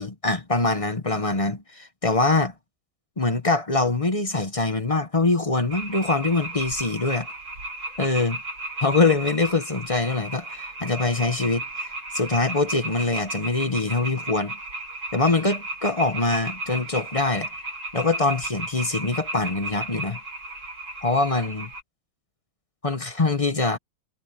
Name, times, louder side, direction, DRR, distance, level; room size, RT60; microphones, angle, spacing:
voice 1, 0.0-2.5 3.2-7.3 8.0-8.4 8.8-14.6 15.1-17.5 17.9-20.2 21.0-21.7 22.8-23.8, left 3 dB, 25° left, 0.7 m, -24 dB
sound 1, 5.7-21.8, right 2 dB, 70° right, 8.5 m, -34 dB
omnidirectional pair, 2.2 m